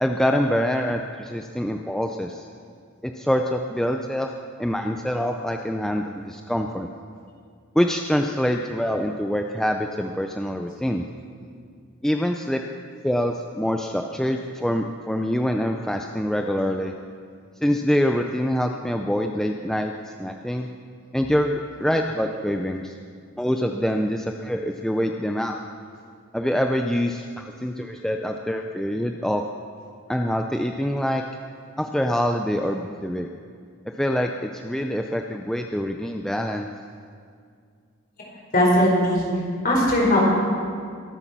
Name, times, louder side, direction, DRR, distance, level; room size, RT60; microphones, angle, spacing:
voice 1, 0.0-2.5 3.0-4.3 4.6-6.9 7.7-11.0 12.0-12.6 13.0-16.9 17.6-20.7 21.1-22.9 23.4-25.6 26.3-29.4 30.1-31.2 31.8-33.3 34.0-36.7, equal, 5° left, 3 dB, 0.4 m, -25 dB
voice 2, 38.5-39.3 39.6-40.2, left 1 dB, 45° left, -3 dB, 4.3 m, -19 dB
22.5 x 8.3 x 6.0 m, 2.2 s
head